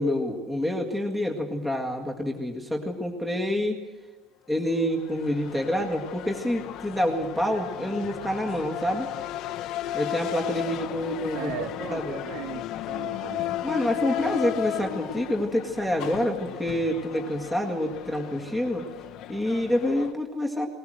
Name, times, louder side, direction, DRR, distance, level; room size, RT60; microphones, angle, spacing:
voice 1, 0.0-3.8 4.5-9.1 9.9-11.5 11.9-12.2 13.6-18.9 19.3-20.7, left 1 dB, 5° right, 2 dB, 2.0 m, -27 dB
sound 1, 4.8-20.1, left 12 dB, 45° left, 1.0 m, -35 dB
voice 2, 11.3-13.6, right 7 dB, 65° right, 5 dB, 2.4 m, -37 dB
20.5 x 20.0 x 7.8 m, 1.2 s
cardioid pair, 175°, 0 cm